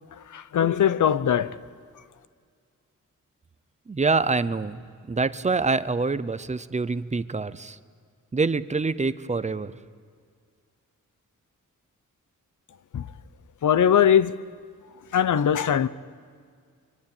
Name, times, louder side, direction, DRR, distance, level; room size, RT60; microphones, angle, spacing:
voice 1, 0.1-1.6 12.9-13.1 13.6-14.3 15.1-15.9, left 9 dB, 70° left, 0.9 m, -21 dB
voice 2, 3.9-4.8 5.1-7.8 8.3-9.7, right 4 dB, 20° right, 0.7 m, -25 dB
24.0 x 24.0 x 9.0 m
wide cardioid pair, 165°, 31 cm